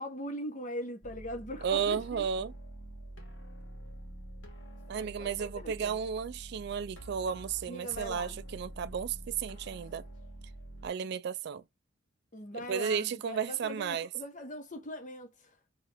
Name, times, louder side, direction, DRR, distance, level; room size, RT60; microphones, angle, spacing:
voice 1, 0.0-2.2 4.9-6.0 7.7-8.4 12.3-15.6, left 1 dB, 40° left, 1.0 m, -41 dB
sound 1, 1.0-10.9, right 1 dB, 90° left, 1.5 m, -47 dB
voice 2, 1.6-2.5 4.9-10.0 10.8-11.6 12.5-14.1, right 7 dB, 60° right, 0.3 m, -33 dB
3.4 x 3.2 x 3.4 m
head